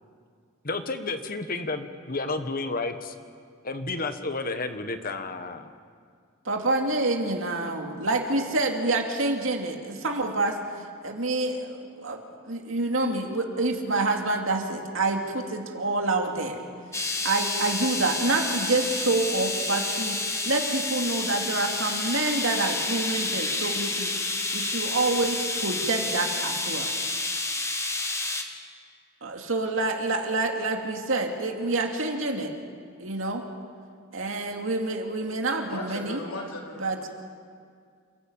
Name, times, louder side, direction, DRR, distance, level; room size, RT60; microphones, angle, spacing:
voice 1, 0.6-3.1 3.6-5.7, left 3 dB, 45° left, 8 dB, 1.4 m, -31 dB
voice 2, 6.4-16.6 17.2-20.2 20.5-24.1 24.5-26.9 29.2-32.5 33.0-33.4 34.1-36.2 36.8-37.1, right 2 dB, 70° right, 3 dB, 2.6 m, -27 dB
sound 1, 16.9-28.4, left 2 dB, 15° left, 1.7 m, -29 dB
voice 3, 35.7-37.1, left 1 dB, 80° left, -1 dB, 4.2 m, -37 dB
28.5 x 15.5 x 8.9 m, 2.2 s
head